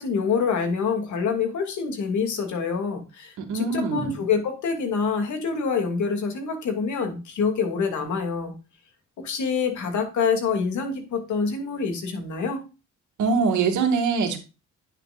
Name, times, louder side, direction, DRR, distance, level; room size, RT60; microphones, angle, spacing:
voice 1, 0.0-8.5 9.2-12.6, left 5 dB, 70° left, 5 dB, 2.7 m, -26 dB
voice 2, 3.4-4.2 13.2-14.4, right 4 dB, 75° right, 3 dB, 2.4 m, -23 dB
9.8 x 7.8 x 2.5 m, 0.30 s
cardioid pair, 90°, 30 cm